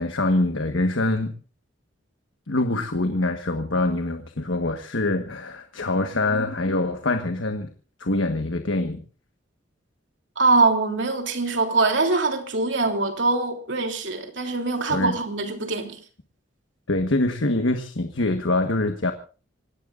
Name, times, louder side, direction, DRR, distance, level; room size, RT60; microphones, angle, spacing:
voice 1, 0.0-1.3 2.5-7.7 8.0-9.0 14.9-15.2 16.9-19.1, left 2 dB, 75° left, 6 dB, 1.4 m, -24 dB
voice 2, 10.4-16.0, right 3 dB, 65° right, 4 dB, 3.2 m, -23 dB
27.0 x 18.0 x 2.5 m, 0.37 s
head